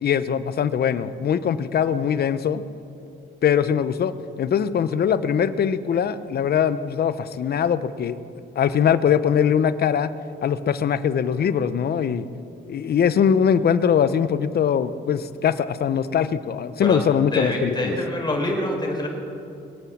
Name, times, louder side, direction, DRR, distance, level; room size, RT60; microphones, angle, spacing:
voice 1, 0.0-2.6 3.4-4.1 4.4-8.2 8.6-10.1 10.4-12.2 12.7-18.0, left 8 dB, 50° left, 14 dB, 0.8 m, -21 dB
voice 2, 17.3-19.1, left 1 dB, 20° left, 0 dB, 4.4 m, -25 dB
22.5 x 8.5 x 7.3 m, 2.6 s
cardioid pair, 90°, 20 cm